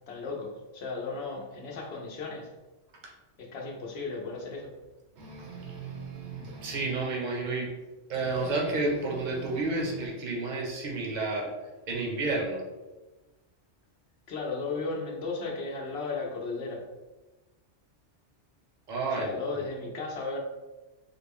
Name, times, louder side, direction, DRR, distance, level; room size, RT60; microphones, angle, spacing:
voice 1, 0.1-2.5 3.4-4.8 14.3-16.9 19.1-20.4, left 3 dB, 65° left, 0 dB, 0.9 m, -35 dB
sound 1, 5.2-7.0 8.1-10.1, right 5 dB, 70° right, 1.0 m, -42 dB
voice 2, 6.6-7.7 8.1-11.5 11.9-12.6 18.9-19.3, right 3 dB, 45° right, -1 dB, 0.8 m, -30 dB
3.7 x 2.1 x 3.4 m, 1.2 s
omnidirectional pair, 1.2 m